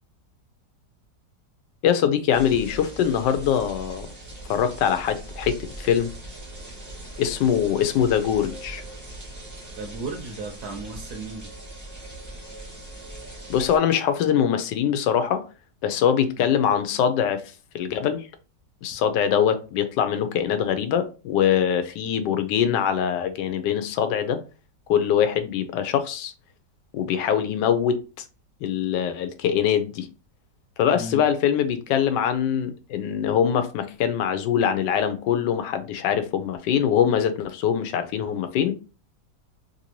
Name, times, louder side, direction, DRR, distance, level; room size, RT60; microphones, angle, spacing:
voice 1, 1.8-4.1 4.5-6.1 7.2-8.8 13.5-15.4 15.8-17.4 17.7-18.3 18.8-24.4 24.9-26.3 26.9-28.0 28.6-30.1 30.8-38.7, left 8 dB, 85° left, 1.2 m, -23 dB
sound 1, 2.3-13.8, right 1 dB, 15° right, 0.7 m, -40 dB
voice 2, 9.8-11.5 30.9-31.2, right 3 dB, 70° right, 1.1 m, -34 dB
3.3 x 2.6 x 2.9 m
omnidirectional pair, 1.9 m